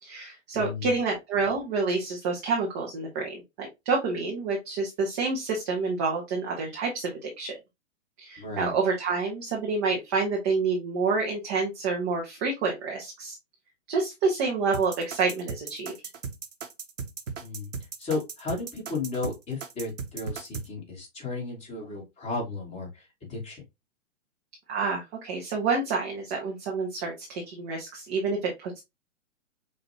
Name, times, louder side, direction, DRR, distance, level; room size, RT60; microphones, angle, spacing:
voice 1, 0.0-7.5 8.2-13.3 13.9-15.9 24.7-28.8, right 4 dB, 15° right, -1 dB, 0.4 m, -28 dB
voice 2, 0.5-0.9 8.4-8.7 17.4-17.7 18.0-23.6, left 3 dB, 20° left, -1 dB, 1.8 m, -34 dB
sound 1, 14.7-20.7, right 5 dB, 75° right, 0.8 m, -37 dB
5.6 x 2.3 x 2.8 m, 0.22 s
figure-of-eight pair, 115°, 39 cm